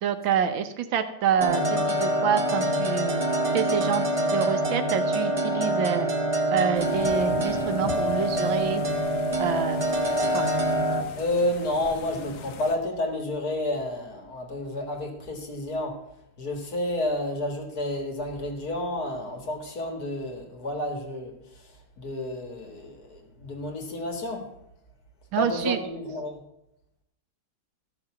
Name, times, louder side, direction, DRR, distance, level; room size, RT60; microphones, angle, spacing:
voice 1, 0.0-3.1 3.5-4.1 4.3-6.1 6.5-8.9 9.4-9.8 10.3-10.5 25.3-25.8, right 8 dB, 80° right, 10 dB, 1.7 m, -27 dB
sound 1, 1.4-11.0, right 1 dB, 25° right, 0.7 m, -25 dB
sound 2, 6.7-12.8, left 6 dB, 80° left, 1.7 m, -40 dB
voice 2, 11.2-16.0 16.4-21.3 22.0-24.5 25.4-26.4, left 1 dB, 50° left, 3 dB, 2.3 m, -30 dB
13.5 x 6.7 x 6.1 m, 0.83 s
omnidirectional pair, 2.1 m